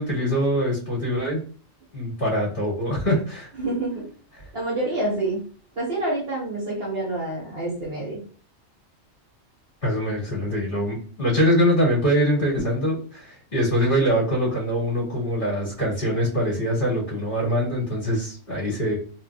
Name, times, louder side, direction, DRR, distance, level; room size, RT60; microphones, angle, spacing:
voice 1, 0.0-1.4 1.9-3.5 9.8-19.0, equal, 40° left, -7 dB, 2.1 m, -23 dB
voice 2, 3.6-4.1 4.5-5.4 5.8-8.2, right 2 dB, 50° right, -3 dB, 1.2 m, -27 dB
3.8 x 3.0 x 2.3 m, 0.41 s
omnidirectional pair, 1.3 m